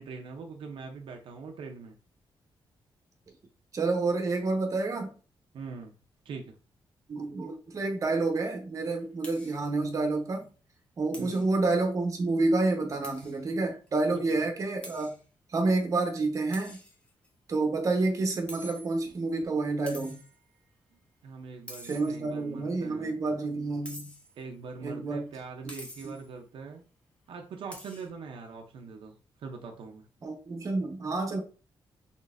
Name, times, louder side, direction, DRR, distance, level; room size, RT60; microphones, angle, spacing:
voice 1, 0.0-2.0 5.5-5.9 6.2-6.5 11.2-11.5 14.1-14.2 21.2-23.1 24.4-26.8 27.3-30.1, right 4 dB, 75° right, 0.6 m, -42 dB
voice 2, 3.7-5.1 7.1-10.5 11.0-15.1 15.5-16.8 17.5-20.2 21.8-24.1 24.8-25.3 26.0-26.1 30.2-31.4, right 3 dB, 40° right, 0.9 m, -29 dB
sound 1, 9.2-9.6 10.0-10.1 10.4-10.5 11.1-11.5 13.0-13.4 13.9-14.0 14.8-15.2 16.5-17.3 18.5-19.2 19.9-20.4 21.7-22.4 23.8-24.4 25.7-26.3 27.7-28.1, equal, 15° left, 0.9 m, -47 dB
3.9 x 3.6 x 2.5 m
wide cardioid pair, 160°, 9 cm